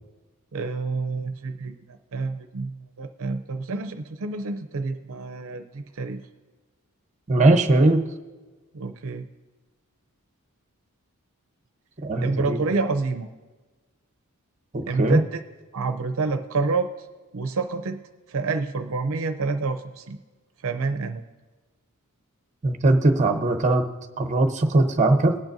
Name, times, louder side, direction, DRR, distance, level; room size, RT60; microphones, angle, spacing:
voice 1, 0.5-6.2 8.7-9.3 12.2-13.3 14.8-15.4 15.7-17.1 17.3-18.0 18.3-20.2 20.6-21.2, right 3 dB, 65° right, 8 dB, 0.6 m, -28 dB
voice 2, 7.3-8.0 12.0-12.6 14.7-15.2 22.6-23.8 24.2-25.3, right 2 dB, 35° right, 6 dB, 0.8 m, -20 dB
20.0 x 8.9 x 2.6 m, 1.3 s
head